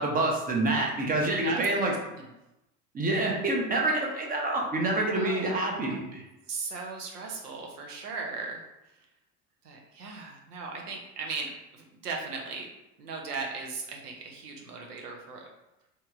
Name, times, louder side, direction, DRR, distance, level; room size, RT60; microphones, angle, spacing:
voice 1, 0.0-1.9 2.9-6.2, right 2 dB, 20° right, 0 dB, 0.6 m, -27 dB
voice 2, 1.4-2.3 5.1-5.6 5.9-6.0 6.5-9.1 9.6-12.7 13.0-15.5, right 4 dB, 85° right, 0 dB, 0.7 m, -38 dB
2.9 x 2.8 x 2.3 m, 0.93 s
hypercardioid pair, 80°, 46 cm